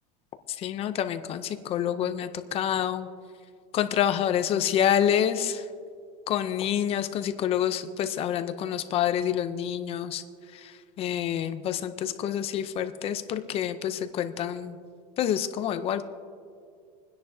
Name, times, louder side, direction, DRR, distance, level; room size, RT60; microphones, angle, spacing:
voice 1, 0.6-3.1 3.7-5.6 6.3-10.2 10.6-10.7 11.0-14.7 15.2-16.0, left 10 dB, 30° left, 10 dB, 0.5 m, -27 dB
27.5 x 10.0 x 2.7 m, 2.3 s
supercardioid pair, 160°, 20 cm